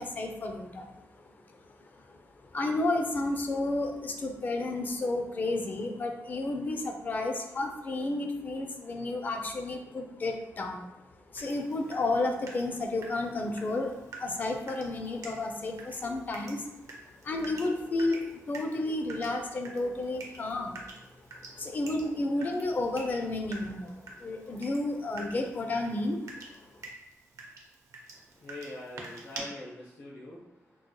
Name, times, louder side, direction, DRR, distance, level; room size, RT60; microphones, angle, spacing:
voice 1, 0.0-11.0 11.3-16.8 17.2-20.9 21.5-26.3 26.7-26.8, left 2 dB, 35° left, 4 dB, 0.4 m, -32 dB
Water tap faucet / Drip, 11.4-29.4, right 2 dB, 80° right, 0.7 m, -48 dB
voice 2, 28.3-30.9, left 1 dB, 65° left, -6 dB, 0.7 m, -44 dB
3.7 x 3.0 x 2.2 m, 0.91 s
wide cardioid pair, 165°, 5 cm